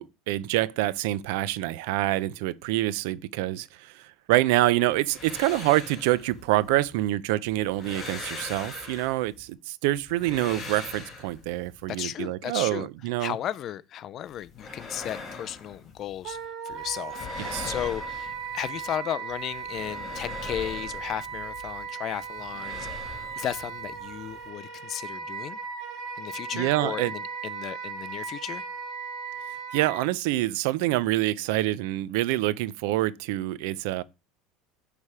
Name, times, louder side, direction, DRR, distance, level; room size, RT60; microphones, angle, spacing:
voice 1, 0.0-13.4 17.4-17.7 26.5-27.1 29.7-34.0, right 16 dB, 75° right, 0.4 m, -26 dB
sound 1, 4.9-7.1 7.5-9.5 9.9-11.8 14.2-16.4 16.7-19.0 19.3-21.8 22.1-24.5, left 4 dB, 20° left, 1.8 m, -42 dB
voice 2, 11.9-12.9 13.2-16.4 16.6-23.1 23.4-25.6 26.2-28.6, left 11 dB, 35° left, 0.4 m, -35 dB
Wind instrument woodwind instrument, 16.2-30.0, right 5 dB, 45° right, 1.4 m, -37 dB
9.8 x 3.3 x 4.8 m
cardioid pair, 155°, 0 cm